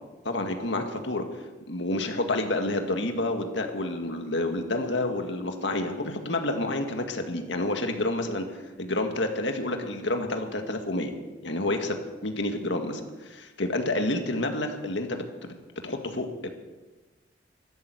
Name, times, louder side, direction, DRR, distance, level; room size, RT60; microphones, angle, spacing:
voice 1, 0.3-1.3 1.7-8.5 8.8-11.1 11.4-15.2 15.8-16.5, left 2 dB, 75° left, 5 dB, 1.9 m, -29 dB
13.0 x 12.0 x 8.1 m, 1.2 s
head